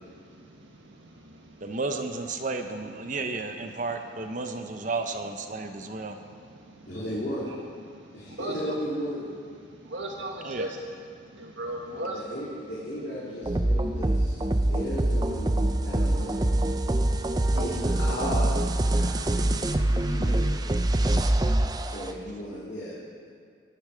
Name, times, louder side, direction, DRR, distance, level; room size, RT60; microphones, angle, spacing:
voice 1, 0.3-1.6 7.9-8.7 9.8-10.8 11.3-12.2 14.5-14.6 17.1-17.5, right 1 dB, 80° right, 0 dB, 1.6 m, -37 dB
voice 2, 1.6-6.2 10.4-10.7, right 3 dB, 40° right, 6 dB, 0.9 m, -33 dB
voice 3, 6.9-7.5 8.1-9.2 11.8-15.5 15.8-16.5 17.4-20.6 21.9-23.1, equal, 60° left, -9 dB, 3.4 m, -35 dB
sound 1, 13.5-22.1, right 1 dB, 20° right, 0.5 m, -25 dB
19.0 x 11.5 x 5.1 m, 2.1 s
head